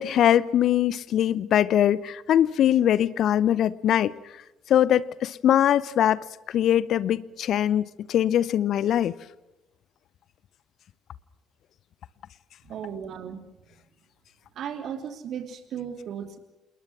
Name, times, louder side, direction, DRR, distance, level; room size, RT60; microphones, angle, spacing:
voice 1, 0.0-4.1 4.7-9.1, left 11 dB, 50° left, 0.8 m, -22 dB
voice 2, 12.6-13.8 14.5-16.4, right 8 dB, 50° right, 3.1 m, -36 dB
28.5 x 21.5 x 6.0 m
figure-of-eight pair, 50°, 0 cm